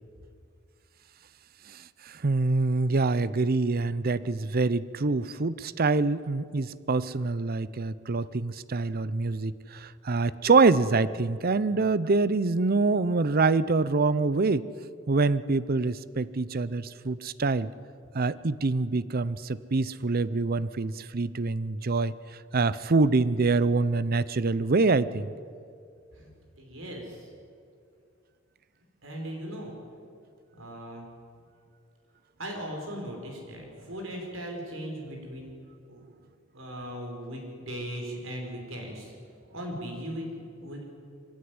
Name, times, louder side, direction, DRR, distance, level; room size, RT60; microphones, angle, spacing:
voice 1, 1.7-14.7 15.1-17.7 18.1-22.1 22.5-25.3, right 3 dB, 50° right, 17 dB, 0.7 m, -25 dB
voice 2, 26.6-27.3 29.0-29.7 30.6-31.1 32.4-35.5 35.9-36.0 36.5-39.1 39.5-40.3 40.6-40.8, equal, 80° right, 1 dB, 5.6 m, -38 dB
24.0 x 15.5 x 9.6 m, 2.3 s
head